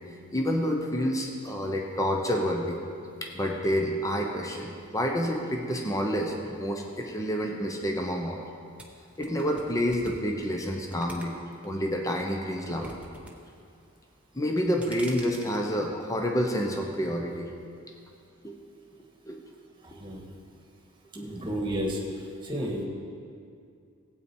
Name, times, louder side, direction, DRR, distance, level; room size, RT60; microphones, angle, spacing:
voice 1, 0.3-2.8 3.2-8.4 9.2-11.4 11.6-13.0 14.3-17.5 18.4-18.6 19.3-19.4 19.9-20.0 21.1-21.4, equal, 15° left, 1 dB, 0.9 m, -29 dB
sound 1, 8.8-11.7 12.1-13.3 13.6-14.1 14.5-15.6, right 1 dB, 5° right, 0.8 m, -45 dB
voice 2, 19.8-20.2 21.2-22.0 22.4-22.8, equal, 20° right, -1 dB, 1.6 m, -31 dB
16.0 x 8.7 x 4.5 m, 2.4 s
head